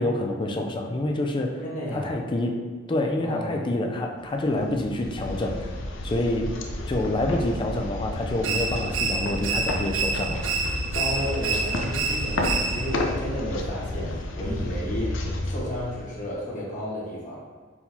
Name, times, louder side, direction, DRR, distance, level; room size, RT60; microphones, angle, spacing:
voice 1, 0.0-1.6 1.9-2.6 2.9-5.7 6.0-6.5 6.9-10.5, left 1 dB, 25° left, 2 dB, 0.4 m, -27 dB
voice 2, 1.6-2.1 3.2-3.7 10.9-17.4, left 1 dB, 45° left, -5 dB, 1.2 m, -32 dB
sound 1, 4.4-16.5, left 1 dB, 80° left, 0.5 m, -31 dB
sound 2, 8.4-13.1, right 4 dB, 80° right, 0.5 m, -28 dB
4.5 x 3.8 x 2.7 m, 1.4 s
head